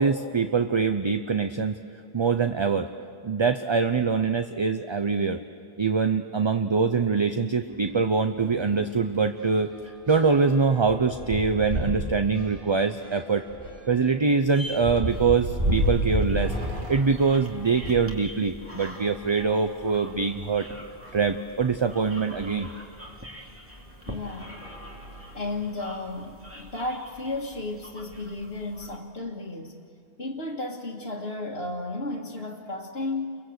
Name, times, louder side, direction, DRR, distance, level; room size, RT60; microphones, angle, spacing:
voice 1, 0.0-1.9 2.1-2.9 3.2-5.4 5.8-9.7 10.1-13.5 13.9-16.6 16.9-20.7 21.1-22.7, right 5 dB, 30° right, 8 dB, 0.7 m, -24 dB
sound 1, 7.7-7.9 8.3-8.4 8.7-18.2 18.9-20.2 20.9-21.0 21.3-21.4 23.1-23.2 23.8-24.1 24.5-25.7, equal, 55° right, 2.7 m, -32 dB
sound 2, 15.0-29.0, equal, 15° right, 2.4 m, -45 dB
voice 2, 24.1-24.6 25.3-29.8 30.2-33.3, left 2 dB, 80° left, -4 dB, 1.9 m, -33 dB
30.0 x 23.0 x 8.1 m, 2.4 s
omnidirectional pair, 1.0 m